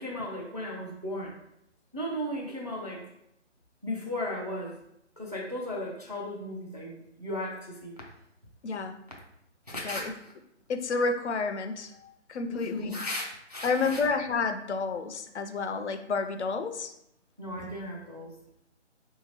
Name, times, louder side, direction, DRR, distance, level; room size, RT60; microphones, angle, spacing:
voice 1, 0.0-1.4 1.9-3.0 3.8-4.8 5.2-8.0 9.7-10.0 12.5-14.0 17.4-18.3, left 1 dB, 35° right, -1 dB, 0.4 m, -35 dB
voice 2, 8.6-9.0 9.8-10.1 10.7-12.9 13.6-16.9, left 4 dB, 70° left, 8 dB, 0.5 m, -30 dB
3.4 x 2.7 x 2.9 m, 0.78 s
figure-of-eight pair, 175°, 36 cm